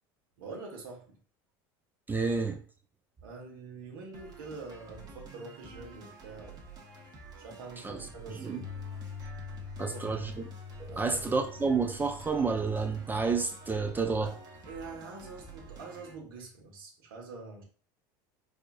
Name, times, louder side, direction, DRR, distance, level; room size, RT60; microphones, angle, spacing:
voice 1, 0.4-1.0 3.2-6.6 7.4-8.7 9.8-10.2 10.9-11.7 14.1-14.3 14.7-17.6, right 4 dB, 90° right, 1.1 m, -45 dB
voice 2, 2.1-2.6 7.8-8.1 8.3-8.6 9.8-10.4 10.9-14.3, right 4 dB, 15° right, 0.4 m, -30 dB
sound 1, 4.1-16.1, right 4 dB, 35° right, 1.0 m, -50 dB
Piano, 8.6-16.7, left 7 dB, 45° left, 0.5 m, -47 dB
4.8 x 2.5 x 2.2 m
supercardioid pair, 110°, 12 cm